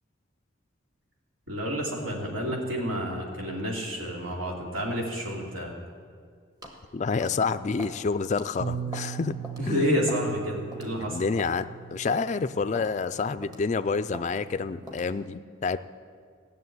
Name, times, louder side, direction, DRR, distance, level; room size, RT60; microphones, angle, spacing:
voice 1, 1.5-5.7 9.6-11.2, equal, 80° right, -2 dB, 2.8 m, -29 dB
sound 1, 6.6-6.8 7.2-7.4 7.8-8.0 8.3-8.5 8.9-9.1 9.4-9.6 10.1-10.3 10.7-10.9 11.4-11.5 12.1-12.2 12.7-12.9 13.4-13.7 14.1-14.3 14.9-15.1, equal, 20° right, 1.4 m, -41 dB
voice 2, 6.9-9.3 9.7-9.9 11.0-15.8, left 4 dB, 35° left, 13 dB, 0.3 m, -28 dB
Bass guitar, 8.6-13.1 13.9-14.8, right 8 dB, 55° right, 0.5 m, -39 dB
15.5 x 6.8 x 9.4 m, 2.1 s
head